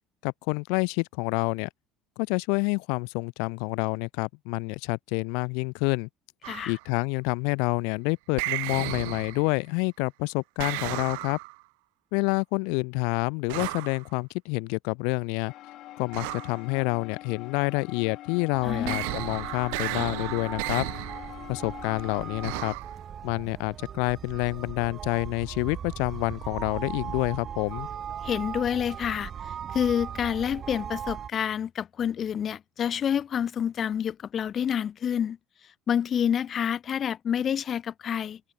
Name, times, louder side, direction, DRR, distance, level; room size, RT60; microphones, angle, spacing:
voice 1, 0.2-1.7 2.2-6.1 6.7-11.4 12.1-15.5 16.0-20.9 21.5-22.7 23.2-27.9, left 36 dB, 80° left, 0.6 m, -28 dB
sound 1, 6.4-6.8 8.4-9.6 10.6-11.6 13.5-14.0 16.1-16.6 18.8-21.3 22.4-22.9, right 32 dB, 85° right, 0.3 m, -34 dB
sound 2, 15.5-22.8, left 15 dB, 60° left, 2.2 m, -43 dB
sound 3, 18.5-31.3, right 8 dB, 40° right, 1.0 m, -39 dB
voice 2, 18.6-19.1 28.2-29.3 29.7-35.4 35.9-38.4, left 8 dB, 40° left, 0.9 m, -28 dB
supercardioid pair, 100°, 0 cm